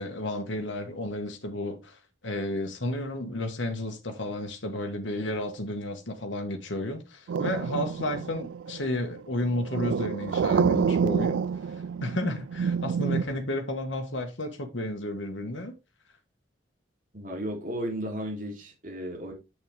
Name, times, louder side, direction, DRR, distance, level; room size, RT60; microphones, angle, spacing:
voice 1, 0.0-11.4 11.7-11.8 12.0-15.8, left 1 dB, 75° left, 1.6 m, -32 dB
sound 1, 7.3-13.2, right 6 dB, 70° right, 0.3 m, -28 dB
voice 2, 17.1-19.3, equal, 45° right, 3.1 m, -34 dB
8.1 x 6.6 x 3.4 m
head